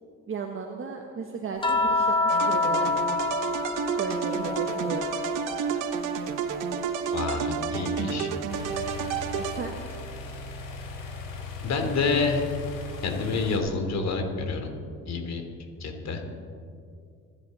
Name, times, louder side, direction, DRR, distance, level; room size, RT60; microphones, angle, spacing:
voice 1, 0.3-3.1 4.0-5.2 8.7-8.8 9.3-9.7, right 5 dB, 40° right, 2 dB, 1.4 m, -35 dB
sound 1, 1.6-6.1 6.5-8.1 9.6-9.8, left 3 dB, 15° left, 1.7 m, -29 dB
sound 2, 2.3-10.0, right 6 dB, 70° right, 1.3 m, -30 dB
voice 2, 7.1-8.3 11.6-12.4 13.0-14.7 15.1-15.4 15.8-16.2, left 4 dB, 50° left, 5 dB, 3.0 m, -28 dB
sound 3, 8.5-13.6, left 3 dB, 75° left, 2.6 m, -38 dB
26.5 x 10.5 x 4.2 m, 2.3 s
supercardioid pair, 70°, 33 cm